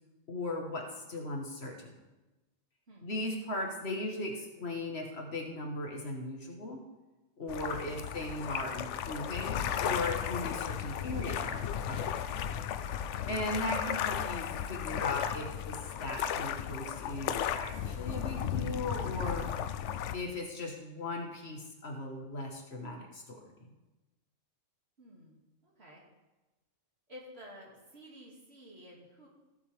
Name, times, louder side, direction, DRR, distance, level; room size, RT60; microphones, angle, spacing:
voice 1, 0.3-1.9 3.0-6.8 7.4-12.1 13.3-19.5 20.1-23.4, left 2 dB, 55° left, 1 dB, 1.7 m, -38 dB
sound 1, 7.5-20.1, left 9 dB, 70° left, 0.9 m, -35 dB
voice 2, 13.2-13.5 25.0-26.0 27.1-29.3, equal, 55° right, -3 dB, 2.7 m, -52 dB
15.0 x 8.2 x 3.5 m, 1.1 s
omnidirectional pair, 1.3 m